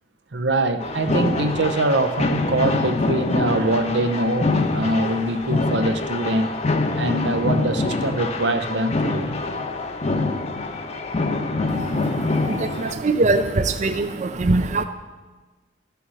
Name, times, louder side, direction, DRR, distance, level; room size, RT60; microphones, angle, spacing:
voice 1, 0.3-6.5 7.0-9.3 12.9-13.0, right 2 dB, 85° right, 8 dB, 0.8 m, -23 dB
sound 1, 0.8-12.9, left 3 dB, 40° left, 0.8 m, -25 dB
voice 2, 11.7-14.8, right 3 dB, 40° right, 9 dB, 0.5 m, -23 dB
12.5 x 6.9 x 6.3 m, 1.3 s
head